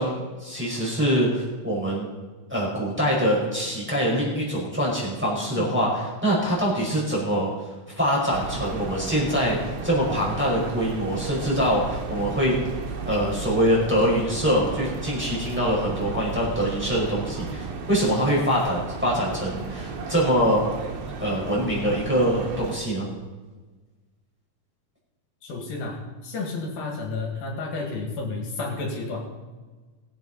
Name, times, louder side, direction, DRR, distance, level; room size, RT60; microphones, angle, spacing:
voice 1, 0.0-2.1 2.5-7.5 7.9-12.5 13.0-20.6 21.2-23.1, equal, 5° right, -5 dB, 4.9 m, -24 dB
sound 1, 8.3-22.8, right 4 dB, 90° right, 3.2 m, -34 dB
voice 2, 25.4-29.3, left 3 dB, 80° left, 0 dB, 4.1 m, -31 dB
21.0 x 8.4 x 4.2 m, 1.3 s
omnidirectional pair, 4.1 m